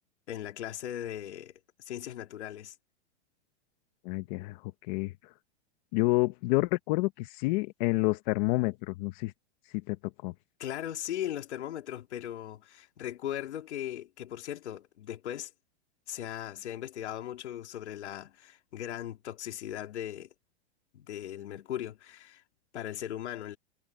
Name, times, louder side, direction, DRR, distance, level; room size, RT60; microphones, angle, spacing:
voice 1, 0.3-1.5 1.9-2.7 10.6-15.5 16.1-20.3 20.9-22.4 22.7-23.6, left 11 dB, 80° left, 3.4 m, -38 dB
voice 2, 4.0-5.3 5.9-9.3 9.7-10.0 10.2-10.3, left 22 dB, 45° left, 1.1 m, -29 dB
supercardioid pair, 145°, 34 cm